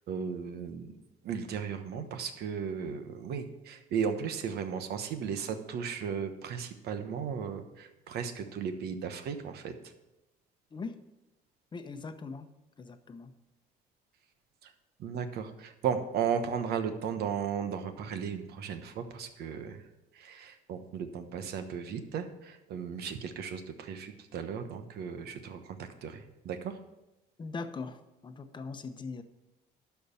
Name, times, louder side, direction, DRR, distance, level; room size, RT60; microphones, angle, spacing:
voice 1, 0.1-1.0 1.2-9.7 14.6-14.7 15.0-19.8 20.1-26.8, right 7 dB, 70° right, 8 dB, 1.1 m, -35 dB
voice 2, 10.7-11.0 11.7-12.5 12.8-13.3 27.4-29.2, left 4 dB, 25° left, 9 dB, 0.9 m, -40 dB
12.0 x 4.7 x 7.0 m, 0.97 s
cardioid pair, 110°, 17 cm